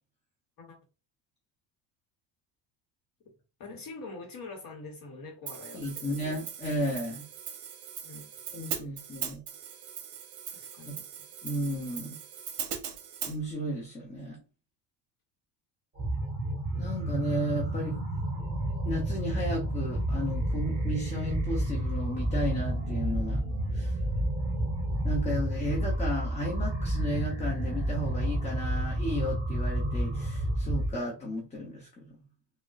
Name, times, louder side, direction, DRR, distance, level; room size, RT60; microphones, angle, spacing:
voice 1, 3.6-6.2 8.0-8.3 8.7-9.1 10.5-11.0, left 3 dB, 45° left, 0.9 m, -45 dB
Hi-hat, 5.5-13.4, right 8 dB, 50° right, 0.8 m, -40 dB
voice 2, 5.7-7.2 8.5-9.4 10.9-11.0 11.4-12.2 13.2-14.4 16.8-18.0 18.8-23.4 23.7-24.0 25.0-32.0, equal, 15° left, 0.7 m, -33 dB
sound 1, 15.9-30.9, right 1 dB, 20° right, 1.6 m, -30 dB
3.5 x 2.1 x 2.3 m
supercardioid pair, 100°, 50 cm